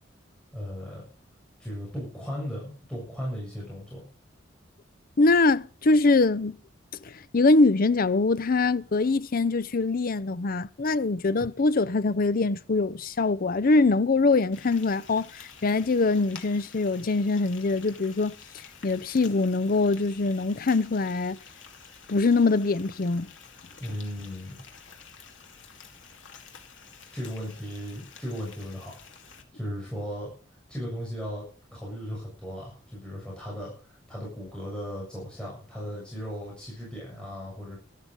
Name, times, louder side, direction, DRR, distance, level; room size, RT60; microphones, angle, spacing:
voice 1, 0.5-1.0 1.6-4.0 23.8-24.6 27.1-29.0 29.5-30.3 30.7-31.5 31.7-37.8, equal, 5° left, 7.1 m, -36 dB
voice 2, 5.2-6.6 7.0-18.3 18.8-21.4 22.1-23.3, left 3 dB, 50° left, 0.6 m, -23 dB
Frying (food), 14.5-29.4, left 6 dB, 75° left, 2.6 m, -50 dB
13.0 x 13.0 x 5.3 m
head